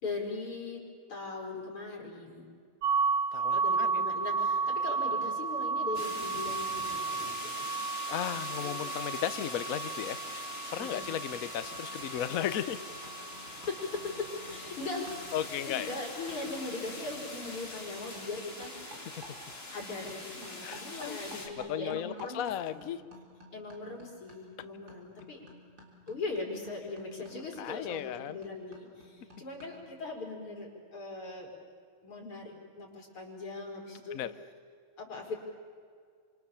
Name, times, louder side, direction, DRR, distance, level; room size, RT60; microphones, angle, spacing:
voice 1, 0.0-0.8 1.1-2.5 3.5-7.8 8.6-8.8 10.8-11.1 13.4-15.3 15.7-18.7 19.6-22.4 22.7-22.8 23.5-25.4 26.1-31.5 32.0-34.2 35.0-35.4, left 3 dB, 80° left, 0 dB, 5.6 m, -40 dB
sound 1, 2.8-14.6, right 5 dB, 75° right, 1.7 m, -33 dB
voice 2, 3.3-4.0 8.1-10.2 10.7-12.8 15.3-15.9 18.9-19.3 20.6-23.0 27.6-28.4 34.1-34.3, left 10 dB, 60° left, 12 dB, 0.9 m, -35 dB
sound 2, 5.9-21.5, left 2 dB, 25° left, 3.1 m, -43 dB
sound 3, 10.5-10.7 11.0-20.2 20.4-29.9, equal, 45° right, 4.3 m, -55 dB
28.5 x 26.0 x 7.1 m, 2.1 s
omnidirectional pair, 2.4 m